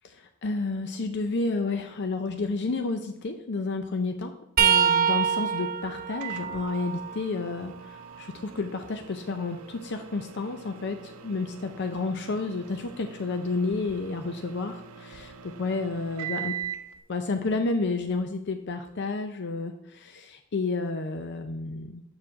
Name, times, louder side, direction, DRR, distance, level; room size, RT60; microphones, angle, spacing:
voice 1, 0.0-16.6 17.1-22.0, left 3 dB, 55° left, 6 dB, 0.5 m, -31 dB
sound 1, 4.6-8.3 8.9-10.8 13.7-13.9 15.1-15.3 16.6-16.7, right 8 dB, 40° right, 0.5 m, -28 dB
Microwave oven, 6.2-17.0, right 9 dB, 85° right, 0.6 m, -42 dB
7.5 x 4.8 x 3.6 m, 0.87 s
head